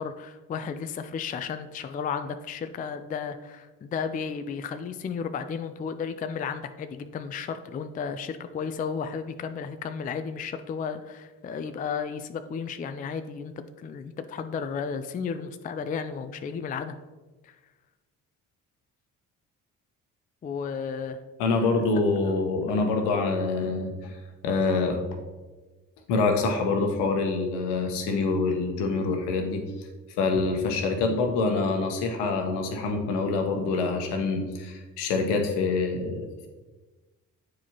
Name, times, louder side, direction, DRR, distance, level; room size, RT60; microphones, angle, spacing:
voice 1, 0.0-17.0 17.4-17.6 20.4-21.2 22.2-22.3, left 6 dB, 20° left, 10 dB, 0.4 m, -33 dB
voice 2, 21.4-24.1 24.4-25.0 26.1-29.9 30.2-36.5, left 3 dB, 70° left, 4 dB, 1.0 m, -26 dB
8.6 x 4.7 x 2.9 m, 1.2 s
figure-of-eight pair, 40°, 43 cm